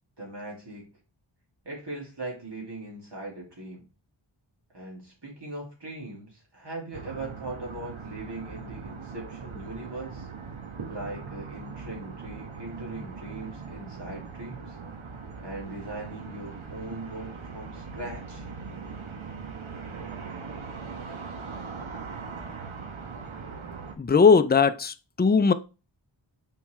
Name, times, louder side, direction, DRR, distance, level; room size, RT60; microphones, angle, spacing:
voice 1, 0.2-0.9 1.6-3.9 4.7-10.3 10.9-14.8 15.4-18.4, right 2 dB, 60° right, 2.5 m, -39 dB
sound 1, 6.9-24.0, right 5 dB, 90° right, 1.1 m, -40 dB
voice 2, 24.0-25.5, left 5 dB, 20° left, 0.5 m, -19 dB
7.0 x 4.6 x 3.2 m
wide cardioid pair, 50°, 47 cm